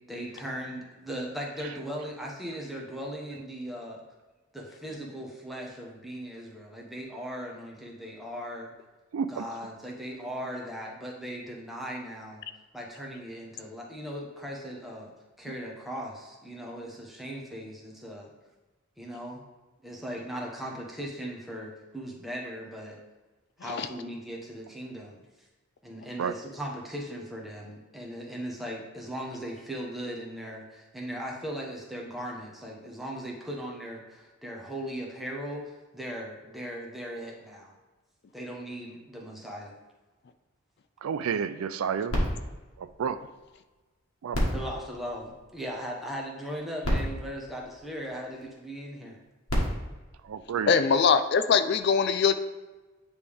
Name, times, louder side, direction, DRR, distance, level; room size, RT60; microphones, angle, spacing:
voice 1, 0.1-4.0 4.5-8.7 9.3-12.4 12.7-15.1 15.4-18.3 19.0-19.4 19.8-23.0 23.6-25.2 25.8-37.7 38.3-39.7 44.5-49.2, equal, ahead, -3 dB, 1.0 m, -38 dB
voice 2, 9.1-9.4 26.2-26.3 41.0-42.2 43.0-43.1 44.2-44.4 50.3-50.7, right 7 dB, 85° right, 12 dB, 0.4 m, -30 dB
sound 1, 42.1-43.7 44.3-45.9 46.5-46.6 46.8-48.4 49.2-51.1 51.8-51.9, equal, 90° left, 1.5 m, -32 dB
voice 3, 50.7-52.3, left 6 dB, 55° left, 10 dB, 0.3 m, -22 dB
9.0 x 3.4 x 3.4 m, 1.2 s
head